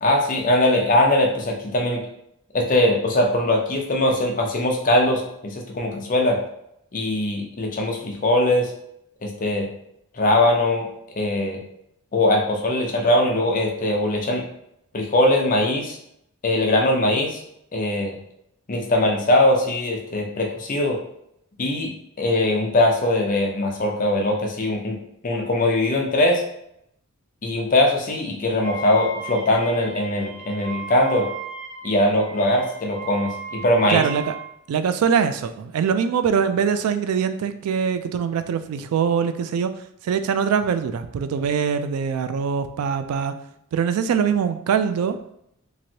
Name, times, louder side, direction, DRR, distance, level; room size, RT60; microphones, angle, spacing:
voice 1, 0.0-2.0 2.5-6.4 6.9-8.7 9.2-9.7 10.1-10.9 11.2-11.6 12.1-14.4 14.9-16.0 16.4-17.4 17.7-18.1 18.7-21.0 21.6-21.9 22.2-25.0 25.2-26.4 27.4-31.3 31.8-34.0, left 1 dB, 40° left, 1 dB, 0.6 m, -21 dB
Wind instrument woodwind instrument, 28.6-34.5, right 4 dB, 25° right, 0.9 m, -36 dB
voice 2, 33.9-34.3 34.7-39.7 40.0-43.3 43.7-45.2, right 7 dB, 85° right, 13 dB, 0.3 m, -23 dB
3.1 x 2.5 x 2.7 m, 0.75 s
head